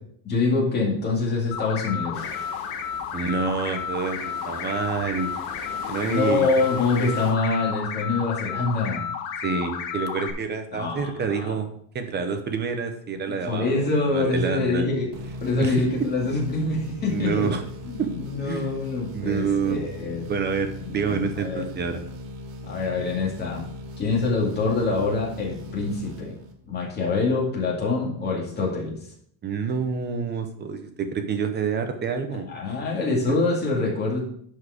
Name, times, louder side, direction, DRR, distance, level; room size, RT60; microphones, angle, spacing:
voice 1, 0.2-2.2 6.0-9.1 10.7-11.1 11.4-11.6 13.3-15.1 15.4-17.5 17.8-20.3 20.8-21.7 22.7-23.7 24.0-26.3 26.7-29.0 32.5-34.2, left 3 dB, 20° left, -3 dB, 2.2 m, -25 dB
sound 1, 1.5-10.3, left 7 dB, 85° left, 1.5 m, -32 dB
sound 2, 2.1-7.3, left 4 dB, 45° left, 2.4 m, -42 dB
voice 2, 3.1-5.3 5.9-6.5 9.4-11.7 11.9-14.9 15.6-15.8 17.1-17.6 18.0-18.1 18.4-18.7 19.1-19.9 20.3-22.0 29.4-32.5 33.3-33.4, right 5 dB, 20° right, 7 dB, 0.7 m, -27 dB
sound 3, 15.1-26.8, left 1 dB, 80° right, 2.0 m, -39 dB
10.5 x 4.7 x 4.9 m, 0.64 s
cardioid pair, 180°, 48 cm